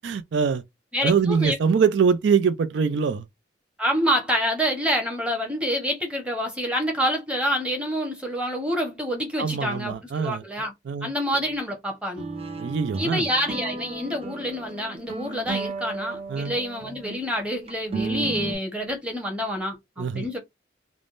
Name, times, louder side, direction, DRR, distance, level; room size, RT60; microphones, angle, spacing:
voice 1, 0.0-0.6 1.0-3.2 9.4-10.4 10.9-11.1 12.6-13.3 16.3-16.5 20.0-20.3, right 6 dB, 80° right, 0.4 m, -23 dB
voice 2, 0.9-1.5 3.8-10.7 11.0-12.2 13.0-20.4, equal, 5° right, 0.8 m, -27 dB
sound 1, 12.2-17.2 17.7-18.5, right 3 dB, 35° right, 0.6 m, -33 dB
3.3 x 2.1 x 2.5 m
head